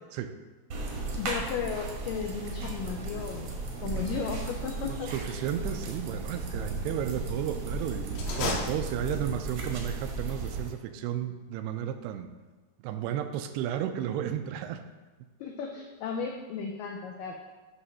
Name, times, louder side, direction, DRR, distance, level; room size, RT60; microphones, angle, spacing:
sound 1, 0.7-10.7, right 3 dB, 65° right, 1.5 m, -35 dB
voice 1, 1.2-5.1 15.4-17.4, left 6 dB, 85° left, 2 dB, 1.9 m, -35 dB
voice 2, 4.9-12.3 12.8-14.8, right 10 dB, 90° right, 8 dB, 2.7 m, -33 dB
sound 2, 8.1-9.5, left 3 dB, 70° left, 2.2 m, -34 dB
9.7 x 3.3 x 6.1 m, 1.3 s
omnidirectional pair, 4.6 m